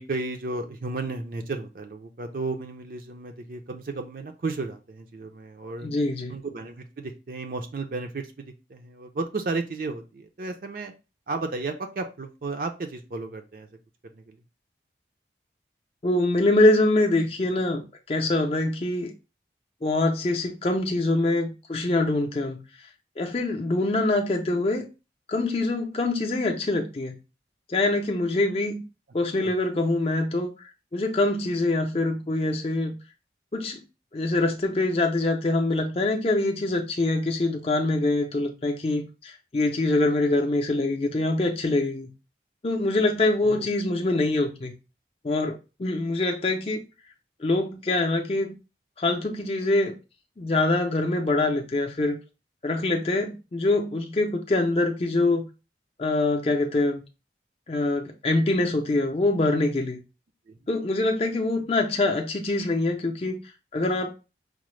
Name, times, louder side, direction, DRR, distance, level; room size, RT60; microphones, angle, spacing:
voice 1, 0.0-5.9 6.3-10.9 11.3-13.7 14.1-14.4 29.4-29.5 43.4-43.7 60.5-60.6, right 3 dB, 50° right, 0.4 m, -33 dB
voice 2, 5.8-6.3 16.0-19.1 19.8-22.6 23.2-24.9 25.3-27.1 27.7-28.8 29.1-33.0 33.5-33.8 34.1-42.1 42.6-44.7 45.2-46.8 47.4-48.6 49.0-50.0 50.4-52.2 52.6-55.5 56.0-57.0 57.7-60.0 60.7-63.4 63.7-64.1, left 2 dB, 35° left, 0.4 m, -24 dB
4.9 x 2.0 x 3.0 m
head